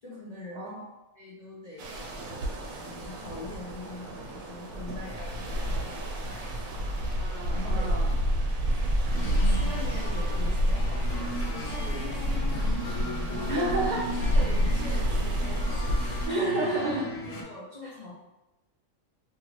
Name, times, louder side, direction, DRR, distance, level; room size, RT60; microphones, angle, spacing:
voice 1, 0.0-0.8 1.1-2.3 2.7-6.7 7.5-8.0 8.7-8.8 9.2-13.7 14.2-16.3 17.2-18.1, left 2 dB, 55° left, -8 dB, 0.4 m, -43 dB
pensacola beach water, 1.8-16.3, equal, 90° right, 1.0 m, -29 dB
sound 1, 5.1-5.5 6.3-6.7 7.4-7.8 8.6-9.0 9.8-10.2 11.0-11.4 12.2-12.6 13.4-13.8 14.6-15.0 15.8-16.2, equal, 45° right, 0.7 m, -48 dB
voice 2, 7.2-8.1 8.7-8.8 13.5-14.0 16.3-17.1, right 2 dB, 75° right, -5 dB, 0.4 m, -30 dB
sound 2, 9.1-17.4, left 1 dB, 75° left, 1.0 m, -37 dB
2.7 x 2.4 x 3.1 m, 0.99 s
omnidirectional pair, 1.4 m